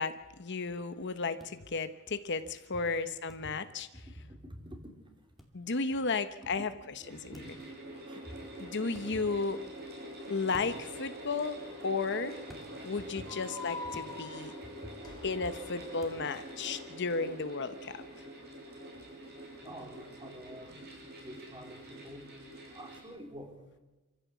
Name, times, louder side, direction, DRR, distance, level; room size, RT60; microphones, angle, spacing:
voice 1, 0.0-4.1 5.5-6.7 7.1-7.4 8.6-9.6 10.3-11.6 11.8-12.4 12.8-14.5 15.2-18.0, left 4 dB, 55° left, 11 dB, 1.0 m, -34 dB
sound 1, 1.4-1.5 3.3-3.5 5.4-5.5 7.3-7.6 8.9-9.1 10.5-10.9 12.5-12.7 13.9-14.1 16.0-16.2, equal, ahead, 2.5 m, -51 dB
voice 2, 4.4-4.9 7.3-7.4 8.1-8.3 13.2-13.3 14.6-14.7 19.6-20.8 21.2-22.3 22.7-23.5, equal, 25° right, 3 dB, 3.8 m, -47 dB
sound 2, 6.8-23.0, right 1 dB, 50° right, 6.7 m, -46 dB
sound 3, 13.2-16.4, left 4 dB, 20° left, 2.7 m, -45 dB
27.0 x 15.0 x 8.3 m, 1.1 s
head